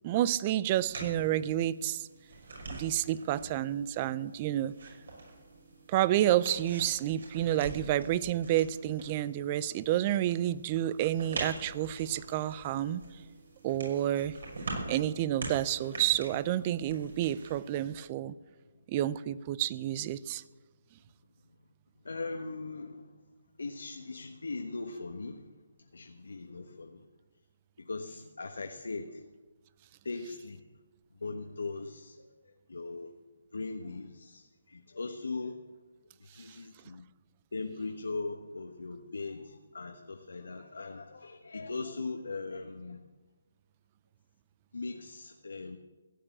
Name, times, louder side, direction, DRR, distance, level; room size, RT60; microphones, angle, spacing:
voice 1, 0.0-2.1 2.7-4.7 5.9-13.0 13.6-14.3 14.9-18.4 18.9-20.4, right 12 dB, 30° right, 18 dB, 0.5 m, -29 dB
sound 1, 0.7-18.0, right 2 dB, 65° right, 5.8 m, -45 dB
voice 2, 22.0-23.2 23.6-25.5 25.9-27.1 27.8-29.2 30.0-30.6 31.2-33.1 33.5-35.6 36.3-37.1 37.5-43.0 44.7-45.8, left 3 dB, 80° left, 5 dB, 1.2 m, -40 dB
15.5 x 8.8 x 8.5 m, 1.3 s
hypercardioid pair, 155°, 0 cm